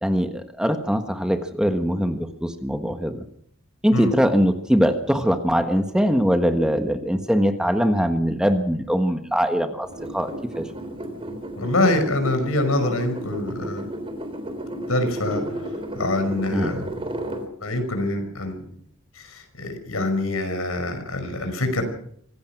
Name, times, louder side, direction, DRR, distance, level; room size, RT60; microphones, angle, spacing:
voice 1, 0.0-3.2 3.8-9.9 10.1-10.6 16.5-16.7, equal, 5° right, 6 dB, 1.4 m, -22 dB
sound 1, 9.8-17.4, right 1 dB, 25° right, 3.6 m, -33 dB
voice 2, 11.6-13.8 14.9-15.6 15.9-16.8 17.6-18.6 19.1-21.8, left 1 dB, 75° left, 7 dB, 5.8 m, -25 dB
25.5 x 17.5 x 6.0 m, 0.67 s
head